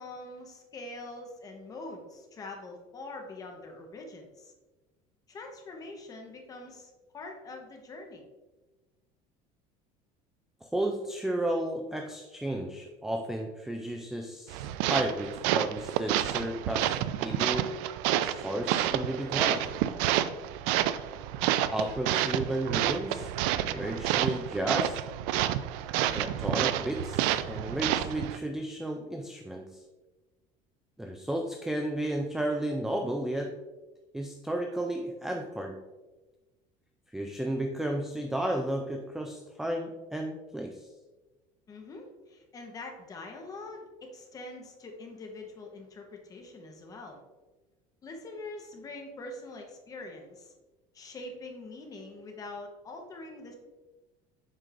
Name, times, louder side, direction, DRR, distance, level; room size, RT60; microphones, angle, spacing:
voice 1, 0.0-4.5 5.3-8.2 41.7-47.2 48.0-50.5 50.9-53.6, left 2 dB, 25° left, 3 dB, 1.0 m, -44 dB
voice 2, 10.6-17.0 17.2-17.8 18.2-19.7 21.7-23.3 23.7-25.0 26.1-29.8 31.0-33.5 34.1-35.8 37.1-40.9, right 1 dB, 5° right, 3 dB, 0.3 m, -33 dB
sound 1, 14.5-28.4, right 12 dB, 85° right, 0.4 m, -29 dB
7.5 x 5.2 x 2.5 m, 1.2 s
cardioid pair, 155°, 15 cm